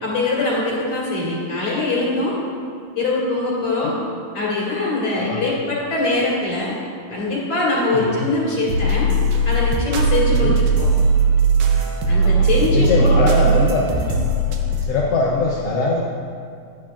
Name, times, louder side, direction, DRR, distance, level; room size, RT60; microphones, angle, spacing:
voice 1, 0.0-2.4 3.0-3.9 4.3-6.7 7.1-9.1 9.4-10.9 12.1-13.5, left 2 dB, 55° left, -6 dB, 3.0 m, -22 dB
voice 2, 7.9-8.3 10.3-10.6 12.2-14.1 14.8-16.0, left 3 dB, 85° left, -3 dB, 1.3 m, -22 dB
sound 1, 8.7-14.9, right 3 dB, 80° right, 2.2 m, -18 dB
11.0 x 8.8 x 2.5 m, 2.3 s
omnidirectional pair, 3.6 m